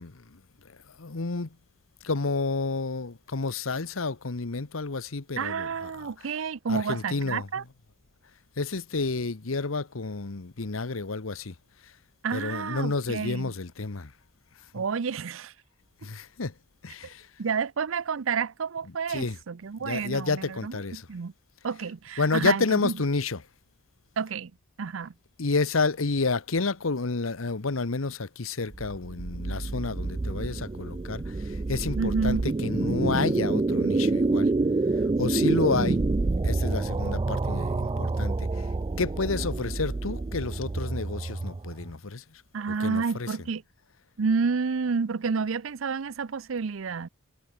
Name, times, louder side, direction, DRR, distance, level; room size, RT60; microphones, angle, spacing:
voice 1, 0.0-1.5 2.0-6.4 6.7-7.7 8.6-11.5 11.8-11.9 12.3-14.1 14.7-14.8 16.0-16.5 16.8-17.3 18.8-19.4 19.8-21.1 21.7-21.8 22.2-23.5 25.4-34.5 35.0-36.0 36.4-38.7 39.0-42.4 42.7-43.5, left 3 dB, 80° left, 1.1 m, -30 dB
voice 2, 5.4-7.6 12.2-13.5 14.7-15.5 17.4-21.3 21.6-22.9 24.2-24.5 24.8-25.1 32.0-32.5 42.5-43.6 44.2-47.1, right 5 dB, 70° right, 0.6 m, -30 dB
sound 1, 28.7-41.9, right 3 dB, 25° right, 0.4 m, -27 dB
head